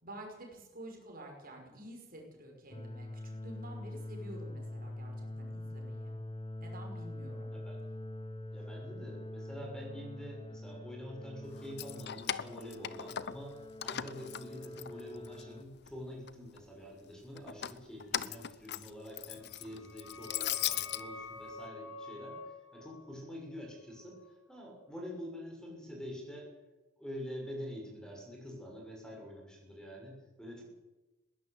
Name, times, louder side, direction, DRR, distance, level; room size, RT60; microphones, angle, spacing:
voice 1, 0.0-6.1 6.6-7.5, right 1 dB, 50° right, 1 dB, 5.5 m, -49 dB
sound 1, 2.7-15.6, left 1 dB, 25° left, 1.1 m, -44 dB
voice 2, 8.5-24.2 24.5-26.5 27.0-30.6, equal, 5° left, 0 dB, 6.3 m, -46 dB
Keys jangling, 11.6-13.5 13.8-15.4 15.8-16.6 17.4-21.0, left 11 dB, 60° left, 0.8 m, -38 dB
sound 2, 19.4-24.9, left 3 dB, 75° left, 3.9 m, -49 dB
20.5 x 17.0 x 8.3 m, 1.1 s
head